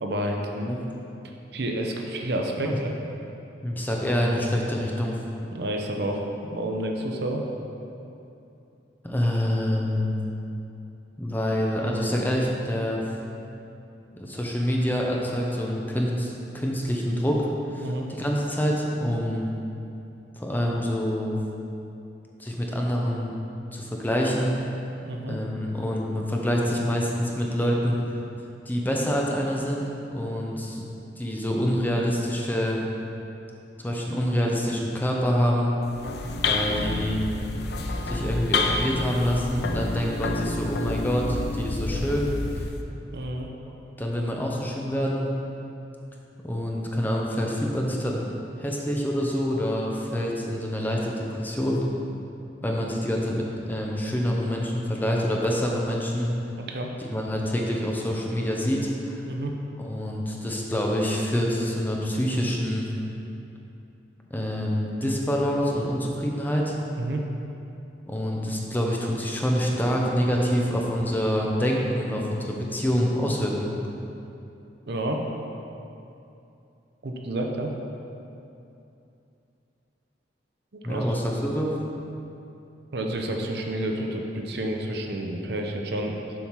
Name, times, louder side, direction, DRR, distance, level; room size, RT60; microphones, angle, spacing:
voice 1, 0.0-0.7 1.5-2.9 5.5-7.4 17.8-18.1 25.0-25.4 30.2-30.3 43.1-43.5 56.7-56.9 59.2-59.5 67.0-67.2 74.9-75.2 77.0-77.7 80.7-81.1 82.9-86.1, right 1 dB, 65° right, 2 dB, 0.7 m, -29 dB
voice 2, 3.6-5.1 9.0-10.2 11.2-13.1 14.1-19.5 20.4-21.4 22.4-23.3 23.7-24.6 25.3-28.2 28.7-30.8 31.2-32.8 33.8-35.7 36.4-37.2 38.0-42.6 44.0-45.3 46.4-48.2 48.6-51.8 52.6-56.3 57.0-59.2 59.8-62.9 64.3-66.7 68.1-73.7 80.8-81.8, equal, 10° left, -2 dB, 0.7 m, -26 dB
sound 1, 35.8-42.8, left 3 dB, 65° left, 0.6 m, -29 dB
7.3 x 5.6 x 4.7 m, 2.7 s
head